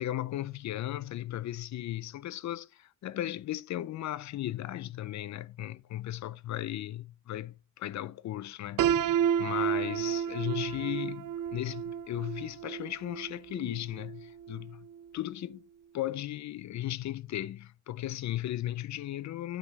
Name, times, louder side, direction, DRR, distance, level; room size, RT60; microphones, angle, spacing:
voice 1, 0.0-14.9 15.1-15.7 15.9-19.6, left 13 dB, 65° left, 0.5 m, -36 dB
Piano, 8.8-14.7, right 9 dB, 85° right, 0.6 m, -31 dB
9.7 x 5.8 x 2.9 m
wide cardioid pair, 145°, 31 cm